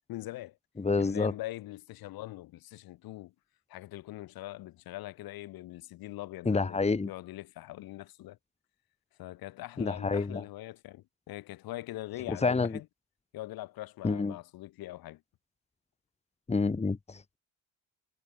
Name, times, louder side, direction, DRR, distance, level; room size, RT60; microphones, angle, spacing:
voice 1, 0.1-0.6 0.9-3.3 3.7-8.4 9.2-12.9 13.3-15.2, left 16 dB, 85° left, 5.3 m, -42 dB
voice 2, 0.8-1.3 6.5-7.1 9.8-10.4 12.4-12.7 14.0-14.4 16.5-17.4, left 4 dB, 20° left, 2.1 m, -28 dB
cardioid pair, 115°, 35 cm